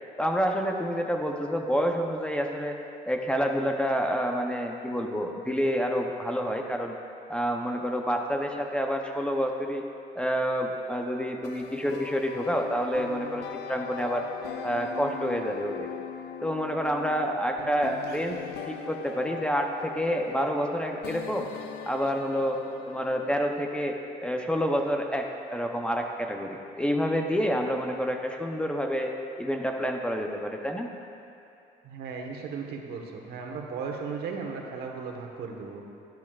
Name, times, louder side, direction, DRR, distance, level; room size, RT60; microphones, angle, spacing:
voice 1, 0.2-2.8 3.0-7.0 7.3-9.8 10.1-14.2 14.6-15.9 16.4-18.4 18.7-21.5 21.9-22.6 22.9-29.1 29.4-30.9, equal, 5° left, 2 dB, 0.6 m, -28 dB
sound 1, 11.3-23.5, left 9 dB, 80° left, 0.6 m, -41 dB
voice 2, 31.8-35.8, right 5 dB, 70° right, 2 dB, 1.2 m, -36 dB
12.0 x 11.0 x 2.4 m, 2.7 s
cardioid pair, 110°, 17 cm